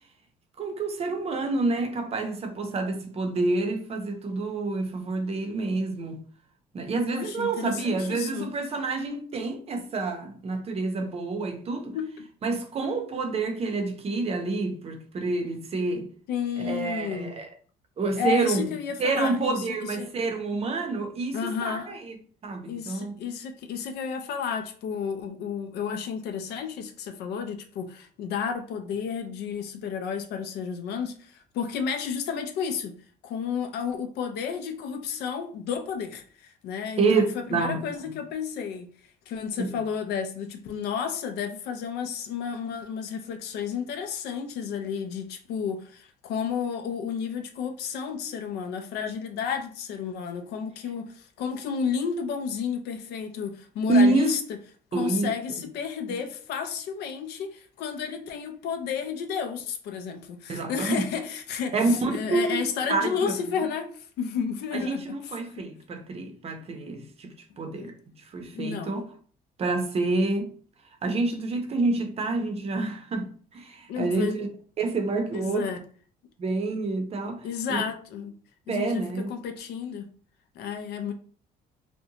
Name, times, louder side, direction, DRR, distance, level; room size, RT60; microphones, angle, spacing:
voice 1, 0.6-6.2 6.7-12.0 12.4-16.1 16.6-17.5 18.0-18.7 19.0-22.2 22.4-23.2 37.0-38.2 39.6-39.7 53.9-54.3 54.9-55.3 60.5-61.1 61.7-63.5 64.7-67.9 68.3-69.0 69.6-70.5 71.0-74.5 74.8-75.7 76.4-77.8 78.7-79.3, right 3 dB, 35° right, 0.6 m, -28 dB
voice 2, 7.1-8.5 11.9-12.1 16.3-17.4 18.2-20.1 21.3-21.9 22.6-32.9 33.2-38.9 39.3-54.4 54.9-61.8 62.1-65.7 67.7-67.9 68.5-68.9 73.9-74.3 75.3-75.8 77.4-78.3 78.7-80.1 80.6-81.1, left 7 dB, 75° left, 0.5 m, -32 dB
2.6 x 2.1 x 2.7 m
cardioid pair, 110°, 17 cm